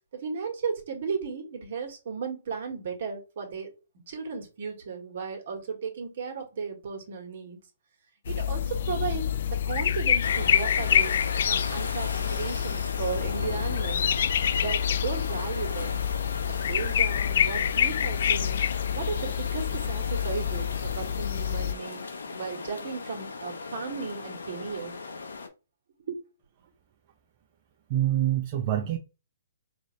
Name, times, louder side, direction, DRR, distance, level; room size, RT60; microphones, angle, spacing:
voice 1, 0.1-7.6 8.3-14.1 14.6-16.0 16.5-18.6 18.9-22.0 22.3-24.9 26.1-26.2, right 5 dB, 55° right, 1.6 m, -35 dB
sound 1, 8.3-21.7, left 9 dB, 60° left, 0.3 m, -27 dB
sound 2, 10.2-25.5, left 4 dB, 90° left, 0.8 m, -37 dB
voice 2, 27.9-29.0, right 12 dB, 40° right, 0.6 m, -25 dB
4.6 x 2.6 x 3.2 m
hypercardioid pair, 150°, 0 cm